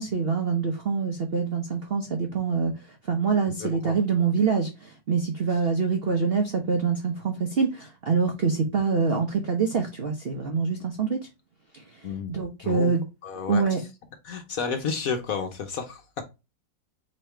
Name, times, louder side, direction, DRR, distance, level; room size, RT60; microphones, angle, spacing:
voice 1, 0.0-11.2 11.7-13.0 13.5-13.8, right 5 dB, 75° right, 0.5 m, -25 dB
voice 2, 3.6-4.0 12.0-12.3 12.6-12.9 13.2-13.6 14.2-16.2, left 5 dB, 60° left, 1.0 m, -31 dB
4.1 x 2.9 x 4.3 m
omnidirectional pair, 2.1 m